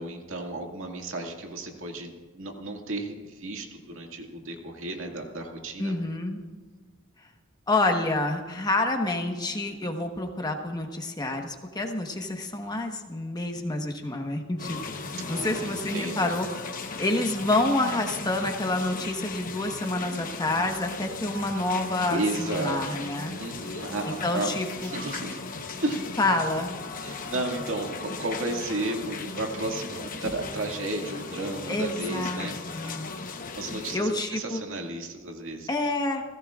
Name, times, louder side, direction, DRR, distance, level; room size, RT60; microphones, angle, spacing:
voice 1, 0.0-5.9 12.6-12.7 15.1-16.3 22.1-24.5 24.8-25.4 25.8-26.1 27.0-33.0 33.5-35.7, right 2 dB, 65° right, 2 dB, 2.2 m, -33 dB
voice 2, 5.8-6.4 7.7-16.5 17.0-23.3 24.0-24.9 26.2-26.8 31.7-33.1 33.9-34.6 35.7-36.2, left 2 dB, 20° left, 3 dB, 1.3 m, -28 dB
sound 1, 14.6-34.0, left 4 dB, 40° left, 1.0 m, -37 dB
29.0 x 16.5 x 2.5 m, 1.4 s
head